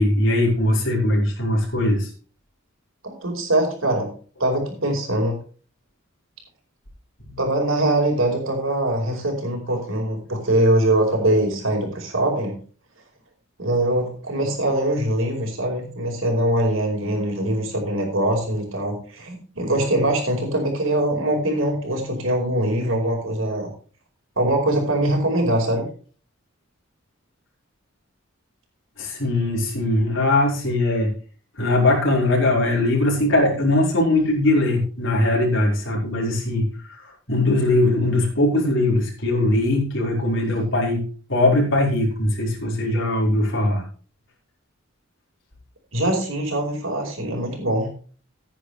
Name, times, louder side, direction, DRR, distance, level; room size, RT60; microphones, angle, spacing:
voice 1, 0.0-2.1 7.3-7.4 29.0-31.1 31.6-41.0 41.3-43.8, left 1 dB, 65° left, -3 dB, 5.0 m, -20 dB
voice 2, 3.0-4.1 4.4-5.4 7.4-12.6 13.6-23.7 24.4-25.9 45.9-47.9, right 1 dB, 80° right, 1 dB, 4.9 m, -22 dB
15.5 x 9.9 x 3.3 m, 0.41 s
head